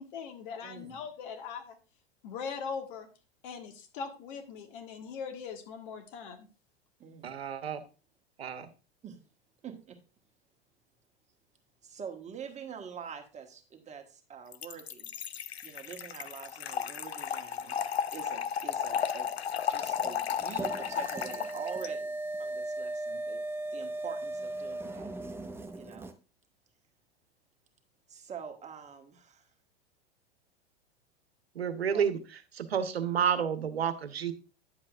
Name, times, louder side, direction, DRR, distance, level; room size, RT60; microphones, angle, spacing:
voice 1, 0.0-1.8 2.2-3.1 3.4-6.5, left 6 dB, 55° left, 6 dB, 1.7 m, -40 dB
voice 2, 0.6-1.0 7.0-7.3 9.0-9.2 9.6-10.0 11.8-15.1 15.6-17.9 18.1-19.3 19.7-23.4 23.7-25.1 25.7-26.1 28.1-29.5 31.9-32.1, right 7 dB, 20° right, 5 dB, 1.4 m, -45 dB
voice 3, 7.2-7.8 8.4-8.7 31.5-32.2 32.5-34.3, right 7 dB, 80° right, 11 dB, 1.0 m, -30 dB
Trickle dribble / Fill (with liquid), 14.5-21.9, left 8 dB, 85° left, 0.6 m, -34 dB
sound 1, 19.7-26.1, right 2 dB, 5° right, 0.8 m, -38 dB
10.0 x 7.5 x 2.5 m, 0.34 s
figure-of-eight pair, 95°, 31 cm